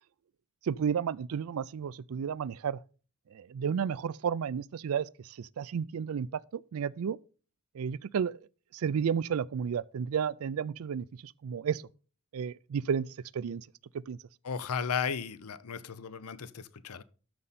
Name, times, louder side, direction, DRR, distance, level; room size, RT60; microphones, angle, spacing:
voice 1, 0.6-2.8 3.3-7.2 7.7-8.4 8.7-11.8 12.3-13.1 13.3-13.7 14.1-14.2, right 7 dB, 75° right, 0.4 m, -32 dB
voice 2, 14.4-17.0, left 6 dB, 85° left, 0.7 m, -35 dB
13.0 x 5.5 x 4.1 m
head